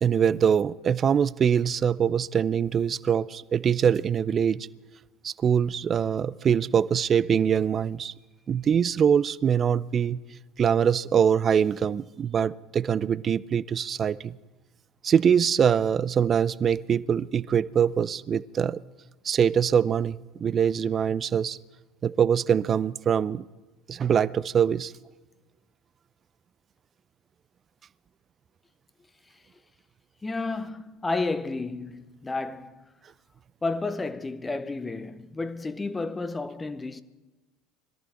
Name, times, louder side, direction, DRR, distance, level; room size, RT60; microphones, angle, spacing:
voice 1, 0.0-4.7 5.2-8.1 8.5-10.2 10.6-14.4 15.0-18.8 19.2-21.6 22.0-23.4 23.9-24.9, right 8 dB, 35° right, 0.5 m, -23 dB
voice 2, 30.2-32.9 33.6-37.0, left 3 dB, 15° left, 0.9 m, -31 dB
21.0 x 14.0 x 4.5 m
figure-of-eight pair, 65°, 0 cm